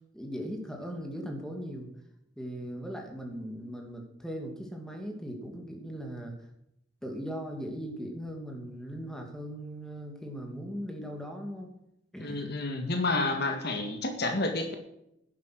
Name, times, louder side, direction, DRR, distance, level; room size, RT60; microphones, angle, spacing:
voice 1, 0.1-1.9 2.4-6.3 7.0-11.7 12.1-12.4, equal, 5° left, 2 dB, 2.8 m, -39 dB
voice 2, 12.2-14.8, left 2 dB, 55° left, 5 dB, 2.0 m, -30 dB
11.0 x 11.0 x 6.4 m, 0.78 s
head